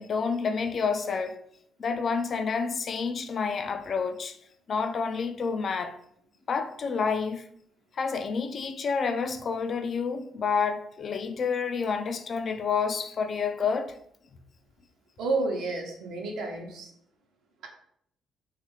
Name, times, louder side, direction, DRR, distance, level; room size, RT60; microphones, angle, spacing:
voice 1, 0.0-1.4 1.8-4.4 4.7-6.0 6.5-7.4 7.9-14.0, left 5 dB, 50° left, 0.3 m, -29 dB
voice 2, 15.2-16.9, right 3 dB, 85° right, 0.7 m, -30 dB
3.1 x 2.4 x 3.0 m
cardioid pair, 90°, 0 cm